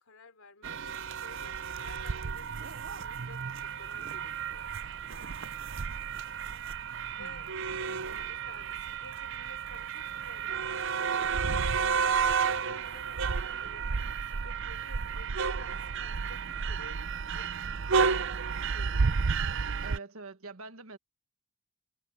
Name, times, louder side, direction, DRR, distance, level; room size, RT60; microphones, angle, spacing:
voice 1, 0.0-5.3 7.1-7.5 8.0-17.6 18.2-19.2, left 3 dB, 75° left, 3.8 m, -54 dB
sound 1, 0.6-20.0, right 5 dB, 60° right, 0.6 m, -32 dB
voice 2, 7.2-7.5 19.8-21.0, right 3 dB, 80° right, 1.5 m, -45 dB
head